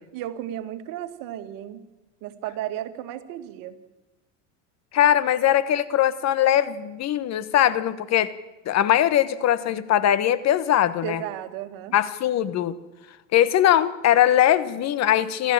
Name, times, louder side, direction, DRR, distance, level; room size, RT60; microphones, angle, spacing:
voice 1, 0.1-1.8 2.2-3.8 11.0-11.9, right 12 dB, 60° right, 9 dB, 2.1 m, -34 dB
voice 2, 4.9-8.3 8.7-11.2 11.9-12.8 13.3-15.5, left 11 dB, 45° left, 15 dB, 1.4 m, -21 dB
28.5 x 13.0 x 9.0 m, 1.1 s
supercardioid pair, 105°, 37 cm